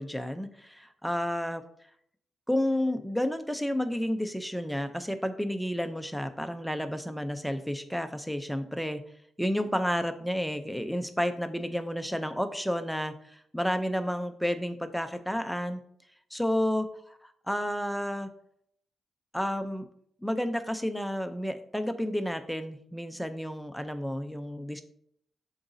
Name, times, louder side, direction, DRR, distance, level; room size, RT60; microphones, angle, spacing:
voice 1, 0.0-1.6 2.5-9.0 9.4-15.8 16.3-16.9 17.2-18.3 19.3-19.8 20.2-24.8, equal, ahead, 8 dB, 0.5 m, -31 dB
11.0 x 3.9 x 2.6 m, 0.68 s
wide cardioid pair, 150°, 0 cm